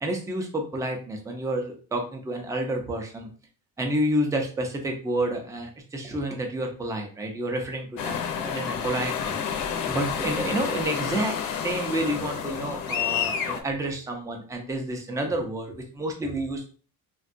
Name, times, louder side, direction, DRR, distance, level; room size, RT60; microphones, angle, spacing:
voice 1, 0.0-3.3 3.8-16.7, right 1 dB, 10° right, 3 dB, 0.4 m, -29 dB
sound 1, 8.0-13.6, left 7 dB, 70° left, 0.6 m, -29 dB
3.5 x 2.2 x 2.5 m, 0.39 s
cardioid pair, 160°, 35 cm